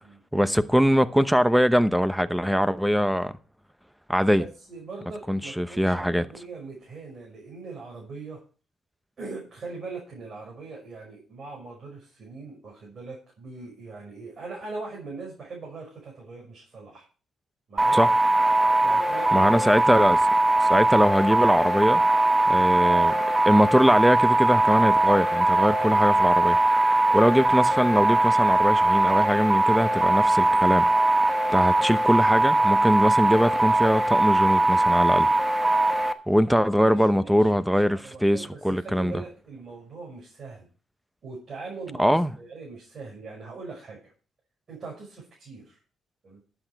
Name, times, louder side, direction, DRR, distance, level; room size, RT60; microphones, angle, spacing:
voice 1, 0.3-3.3 4.1-4.4 5.3-6.3 17.9-18.1 19.3-20.2 20.6-22.0 22.5-23.2 23.5-26.6 27.1-30.9 31.5-35.3 36.3-39.2 42.0-42.3, equal, ahead, 0.8 m, -22 dB
voice 2, 4.7-8.4 9.2-17.0 17.7-18.0 18.8-19.8 26.9-27.2 36.8-40.7 41.2-42.1 42.4-44.1 44.7-45.8 46.2-46.4, right 3 dB, 45° right, 5.7 m, -41 dB
sound 1, 17.8-36.1, right 2 dB, 25° right, 1.0 m, -21 dB
11.5 x 8.1 x 4.7 m
cardioid pair, 90°, 0 cm